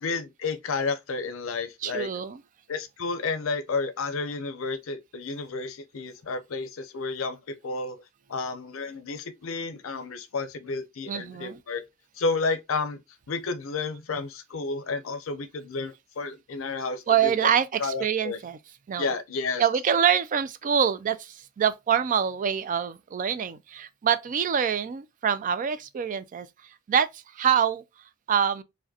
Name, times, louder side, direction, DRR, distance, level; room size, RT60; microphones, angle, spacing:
voice 1, 0.0-2.1 2.7-8.0 8.3-11.8 12.2-13.0 13.3-17.5 17.8-18.4 19.0-19.6, left 4 dB, 75° left, 0.6 m, -31 dB
voice 2, 1.8-2.4 11.1-11.6 17.1-18.6 18.9-19.1 19.6-26.5 26.9-27.8 28.3-28.6, right 8 dB, 40° right, 0.3 m, -25 dB
4.7 x 2.2 x 2.6 m
head